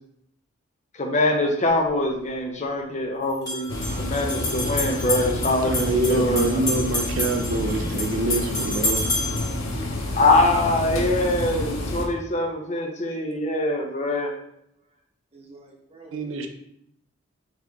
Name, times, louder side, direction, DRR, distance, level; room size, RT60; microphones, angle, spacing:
voice 1, 1.0-6.7 10.2-14.3, left 2 dB, 35° left, 2 dB, 0.6 m, -23 dB
sound 1, 1.7-1.8 3.3-9.6, left 2 dB, 20° left, 1.4 m, -29 dB
sound 2, 3.7-12.1, left 1 dB, 90° left, 0.7 m, -29 dB
voice 2, 5.6-9.0 16.1-16.5, right 3 dB, 70° right, 5 dB, 0.5 m, -26 dB
voice 3, 7.5-8.7 11.5-11.9 15.3-16.5, right 2 dB, 30° right, -1 dB, 0.9 m, -46 dB
4.0 x 3.1 x 3.3 m, 0.74 s
head